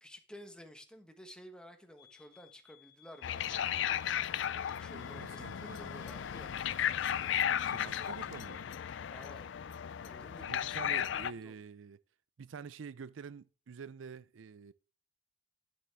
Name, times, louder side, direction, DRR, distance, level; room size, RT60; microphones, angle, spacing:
voice 1, 0.0-3.7 4.8-6.6 9.1-9.5 10.0-11.0 11.3-11.5, equal, 5° left, 1.3 m, -53 dB
sound 1, 2.0-8.7, left 11 dB, 35° left, 2.7 m, -63 dB
sound 2, 3.2-11.3, left 9 dB, 70° left, 0.4 m, -35 dB
voice 2, 4.9-6.0 7.6-8.7 10.4-12.0 12.4-14.7, right 6 dB, 90° right, 0.5 m, -47 dB
11.0 x 7.4 x 3.4 m
head